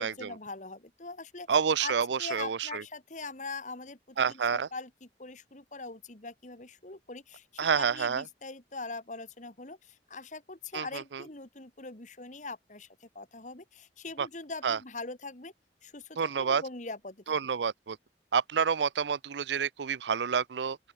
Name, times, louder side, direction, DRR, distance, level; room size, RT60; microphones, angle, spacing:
voice 1, 0.0-1.5 1.8-15.5 15.8-17.2, left 3 dB, 45° left, 2.3 m, -42 dB
voice 2, 1.5-2.8 4.2-4.7 7.6-8.2 10.7-10.9 14.2-14.3 14.6-14.8 16.2-16.6 17.3-18.0 18.3-20.8, right 6 dB, 80° right, 0.5 m, -28 dB
open air
head